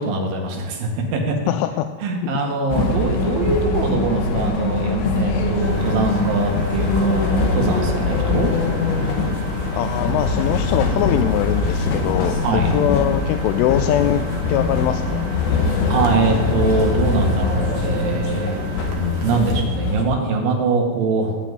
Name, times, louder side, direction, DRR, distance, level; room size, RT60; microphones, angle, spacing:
voice 1, 0.0-1.3 2.0-8.5 12.4-12.7 15.9-18.6 19.2-21.4, right 3 dB, 75° right, 1 dB, 4.2 m, -22 dB
voice 2, 1.5-1.9 2.2-2.3 9.7-14.2 14.5-15.2, left 12 dB, 90° left, 8 dB, 3.1 m, -22 dB
sound 1, 2.7-20.0, left 3 dB, 70° left, 3.5 m, -22 dB
Engine, 5.6-19.7, right 4 dB, 55° right, 1.7 m, -37 dB
16.5 x 6.0 x 9.1 m, 1.4 s
omnidirectional pair, 5.5 m